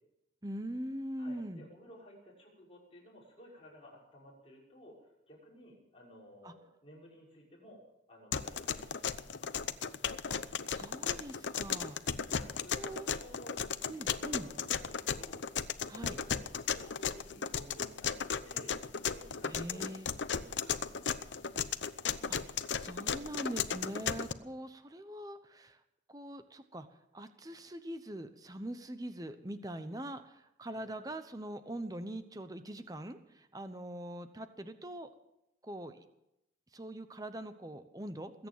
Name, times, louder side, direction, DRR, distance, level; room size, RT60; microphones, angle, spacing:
voice 1, 0.4-1.7 6.4-6.5 10.3-10.4 10.7-12.0 12.8-13.1 13.9-14.5 15.9-16.2 19.5-20.1 22.3-25.8 26.1-26.9 27.1-35.1 35.6-36.0 36.7-38.5, right 1 dB, 20° right, 10 dB, 0.9 m, -43 dB
voice 2, 1.2-7.8 8.1-9.6 12.3-13.6 13.9-15.4 15.9-18.1 18.4-19.9 20.3-21.4 30.7-30.9, equal, 30° left, -4 dB, 6.0 m, -55 dB
sound 1, 8.3-24.3, left 7 dB, 80° left, 0.8 m, -35 dB
21.0 x 9.0 x 7.4 m, 0.86 s
head